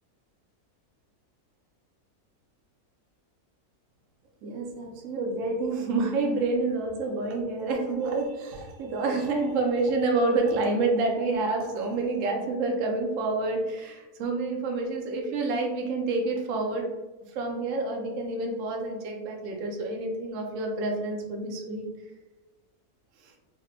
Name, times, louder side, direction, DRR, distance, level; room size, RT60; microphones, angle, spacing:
voice 1, 4.4-16.9 17.3-21.9 23.2-23.3, right 3 dB, 65° right, 2 dB, 0.9 m, -28 dB
5.0 x 2.1 x 2.7 m, 1.1 s
omnidirectional pair, 1.6 m